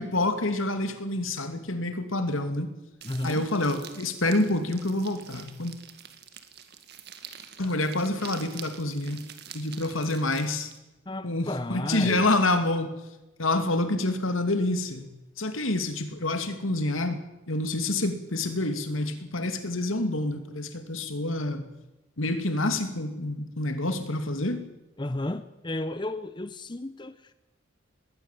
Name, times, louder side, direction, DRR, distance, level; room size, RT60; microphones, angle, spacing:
voice 1, 0.0-2.7 3.2-5.8 7.6-9.2 9.5-10.7 11.2-12.9 13.4-17.2 17.5-21.7 22.2-24.6, left 2 dB, 80° left, 8 dB, 2.6 m, -27 dB
voice 2, 3.0-3.5 11.1-12.3 25.0-27.3, left 1 dB, 20° left, 12 dB, 0.7 m, -33 dB
sound 1, 3.0-10.8, right 8 dB, 50° right, 2.0 m, -46 dB
20.5 x 16.0 x 9.2 m, 0.99 s
head